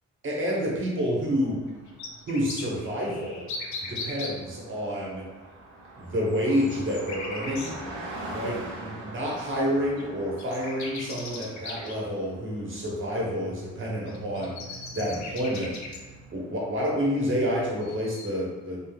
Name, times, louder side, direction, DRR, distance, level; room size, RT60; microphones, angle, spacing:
voice 1, 0.2-1.6 2.3-3.4 3.9-5.2 6.0-7.7 8.2-15.7 16.3-18.8, equal, 40° right, -4 dB, 1.0 m, -29 dB
Car passing by, 1.4-17.5, right 1 dB, 85° right, 0.7 m, -44 dB
sound 1, 1.7-4.3 6.3-7.7 9.6-9.7 10.0-10.1 10.4-11.9 14.1-16.0 17.8-18.3, left 3 dB, 70° left, 0.6 m, -38 dB
3.3 x 2.2 x 2.4 m, 1.3 s
cardioid pair, 90°, 30 cm